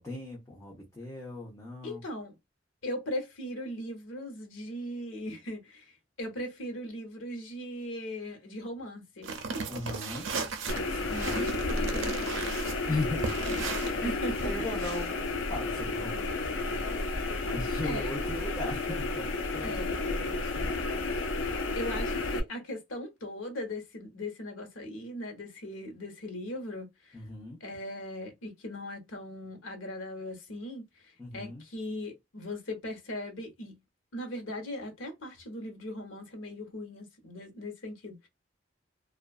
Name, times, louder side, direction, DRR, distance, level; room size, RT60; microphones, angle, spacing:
voice 1, 0.0-2.0 9.7-10.3 10.7-11.2 12.8-13.3 14.0-14.1 14.4-15.2 15.5-16.8 17.4-19.8 20.1-20.8 27.1-27.6 31.2-31.6, left 2 dB, 15° left, 0.8 m, -38 dB
voice 2, 1.8-2.4 2.8-9.3 11.1-12.4 13.5-14.5 17.8-18.1 19.6-20.0 21.4-27.2 27.6-33.8 34.1-38.3, left 1 dB, 90° left, 0.9 m, -39 dB
sound 1, 9.2-15.1, right 4 dB, 75° right, 0.5 m, -36 dB
sound 2, 10.7-22.4, left 3 dB, 70° left, 0.5 m, -32 dB
2.5 x 2.3 x 2.3 m
head